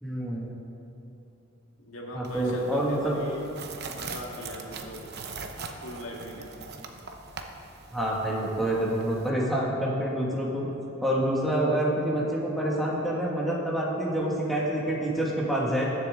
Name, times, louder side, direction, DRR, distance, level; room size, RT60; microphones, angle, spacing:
voice 1, 0.0-0.5 2.1-3.1 7.9-10.7 11.0-15.8, right 1 dB, ahead, -5 dB, 1.9 m, -27 dB
voice 2, 1.8-3.5 3.9-5.2 5.8-6.5, left 1 dB, 85° left, -1 dB, 2.0 m, -39 dB
sound 1, 2.2-9.3, right 4 dB, 55° right, 0.9 m, -42 dB
21.0 x 7.2 x 3.8 m, 2.9 s
head